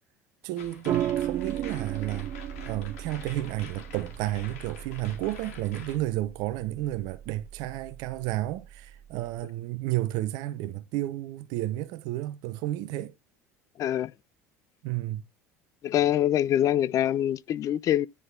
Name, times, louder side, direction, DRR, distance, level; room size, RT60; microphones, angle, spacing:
voice 1, 0.4-2.3 2.6-13.1 14.8-15.2, right 15 dB, 55° right, 0.8 m, -32 dB
sound 1, 0.6-6.0, left 6 dB, 65° left, 2.2 m, -46 dB
sound 2, 0.9-9.4, right 11 dB, 40° right, 0.3 m, -36 dB
voice 2, 13.8-14.1 15.8-18.1, left 11 dB, 40° left, 0.5 m, -24 dB
9.9 x 4.1 x 3.6 m
figure-of-eight pair, 70°, 8 cm